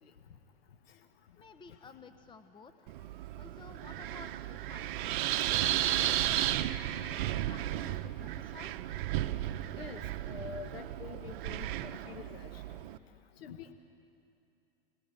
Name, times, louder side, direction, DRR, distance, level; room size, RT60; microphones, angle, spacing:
voice 1, 1.4-2.9 3.4-8.8, left 5 dB, 15° left, 8 dB, 1.0 m, -54 dB
Wind, 2.9-13.0, right 13 dB, 60° right, 0.9 m, -34 dB
voice 2, 5.8-6.1 7.1-7.2 9.8-12.6 13.4-13.7, left 7 dB, 75° left, 6 dB, 1.6 m, -46 dB
26.5 x 20.0 x 9.1 m, 2.7 s
hypercardioid pair, 110°, 30 cm